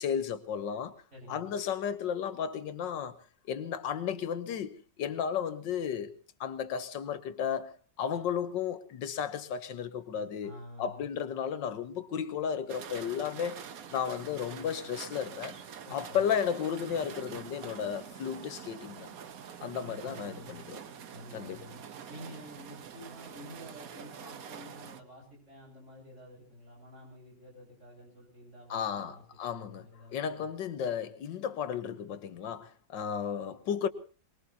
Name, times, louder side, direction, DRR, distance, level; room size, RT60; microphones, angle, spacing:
voice 1, 0.0-0.9 1.3-3.2 3.5-6.1 6.4-10.5 10.8-13.6 13.9-15.6 15.9-19.2 19.6-20.8 21.3-21.6 28.7-33.9, left 8 dB, 85° left, 1.7 m, -34 dB
voice 2, 1.1-1.6 10.4-11.1 15.8-16.3 19.6-20.7 21.1-30.5, left 1 dB, 40° right, 8.6 m, -50 dB
sound 1, 12.7-25.0, right 8 dB, 60° right, 1.3 m, -46 dB
24.0 x 21.0 x 2.8 m
omnidirectional pair, 1.9 m